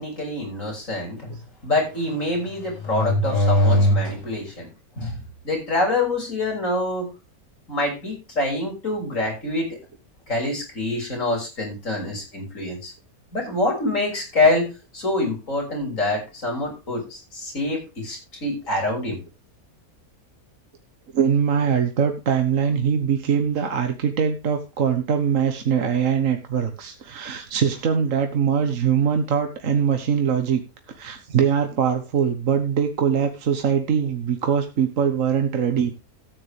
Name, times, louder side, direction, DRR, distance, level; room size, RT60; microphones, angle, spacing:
voice 1, 0.0-1.3 1.6-4.7 5.0-5.2 5.4-7.1 7.7-9.8 10.3-12.9 13.3-14.7 14.9-17.0 17.3-19.2, left 2 dB, 60° left, 0 dB, 6.4 m, -24 dB
voice 2, 21.1-30.6 30.9-35.9, right 7 dB, 65° right, 6 dB, 1.6 m, -22 dB
13.5 x 9.5 x 3.4 m, 0.28 s
omnidirectional pair, 1.5 m